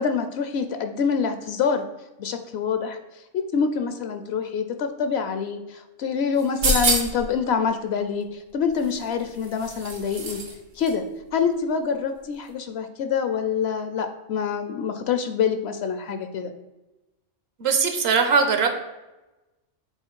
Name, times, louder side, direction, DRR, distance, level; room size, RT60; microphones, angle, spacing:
voice 1, 0.0-1.8 2.2-3.0 3.3-10.4 10.8-11.0 11.3-16.5, left 6 dB, 65° left, 8 dB, 0.8 m, -26 dB
sound 1, 6.4-7.3 8.8-10.5 10.8-10.9, right 2 dB, 90° right, 1.6 m, -26 dB
voice 2, 17.6-18.7, right 5 dB, 60° right, 6 dB, 0.9 m, -20 dB
5.6 x 3.8 x 4.5 m, 1.0 s
omnidirectional pair, 1.3 m